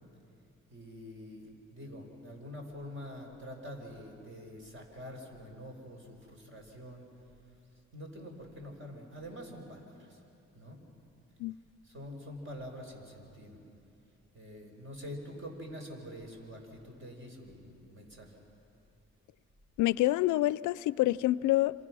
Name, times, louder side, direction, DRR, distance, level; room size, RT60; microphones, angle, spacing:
voice 1, 0.7-7.1 7.9-10.2 10.6-10.8 11.8-13.6 14.3-18.3, equal, 40° right, 2 dB, 5.2 m, -46 dB
voice 2, 19.8-21.7, left 16 dB, 75° left, 20 dB, 0.5 m, -27 dB
27.5 x 26.5 x 6.2 m, 2.7 s
cardioid pair, 90°, 30 cm